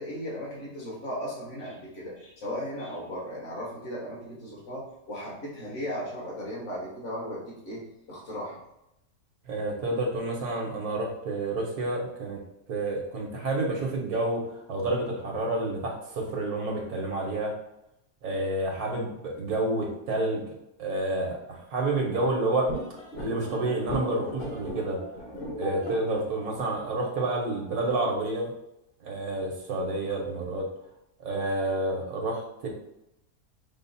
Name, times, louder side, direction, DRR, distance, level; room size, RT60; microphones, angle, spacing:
voice 1, 0.0-8.6, equal, 55° left, -5 dB, 1.8 m, -36 dB
voice 2, 9.4-12.4 12.7-17.5 18.2-20.4 20.8-22.7 23.2-25.0 25.6-28.5 29.0-30.7 31.2-32.7, right 2 dB, 90° right, 0 dB, 1.6 m, -29 dB
sound 1, 22.7-27.8, left 1 dB, 40° left, 1.2 m, -38 dB
6.1 x 2.1 x 4.1 m, 0.86 s
omnidirectional pair, 1.5 m